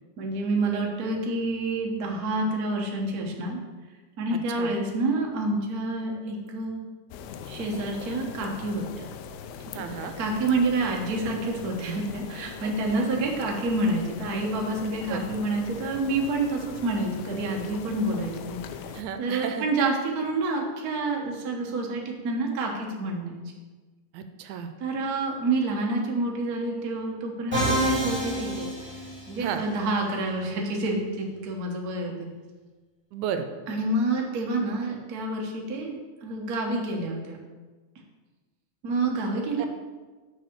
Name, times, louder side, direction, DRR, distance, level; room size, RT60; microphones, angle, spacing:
voice 1, 0.2-3.6 4.2-6.8 7.5-9.1 10.2-18.6 19.2-23.4 24.8-28.7 29.3-32.3 33.7-37.4 38.8-39.7, right 2 dB, 55° right, 0 dB, 1.0 m, -28 dB
sound 1, 7.1-19.0, left 7 dB, 80° left, 1.7 m, -41 dB
voice 2, 9.7-10.1 12.6-13.1 15.0-15.3 18.9-19.7 24.1-24.7 29.4-29.6 33.1-33.5 39.6-39.7, right 8 dB, 85° right, 8 dB, 2.0 m, -33 dB
Musical instrument, 27.5-29.6, equal, 5° right, 2.3 m, -27 dB
6.2 x 4.9 x 6.8 m, 1.3 s
omnidirectional pair, 3.4 m